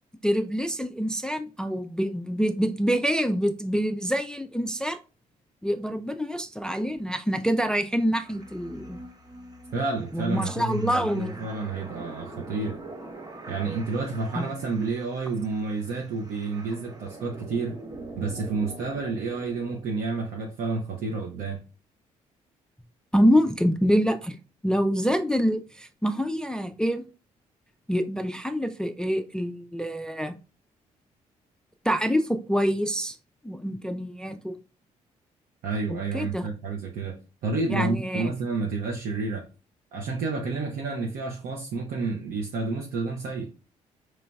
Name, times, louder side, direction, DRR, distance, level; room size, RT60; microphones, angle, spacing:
voice 1, 0.2-5.0 5.6-9.0 10.1-11.5 14.4-14.5 23.1-24.4 24.6-27.1 27.9-30.3 31.8-33.2 33.4-34.6 35.9-36.5 37.7-38.3, equal, 5° left, 0.3 m, -26 dB
sound 1, 8.1-19.8, right 2 dB, 25° right, 0.7 m, -44 dB
voice 2, 9.7-12.8 13.5-17.8 18.2-21.6 35.6-39.5 39.9-43.5, right 3 dB, 60° right, 0.7 m, -30 dB
3.9 x 3.1 x 2.2 m
hypercardioid pair, 45°, 17 cm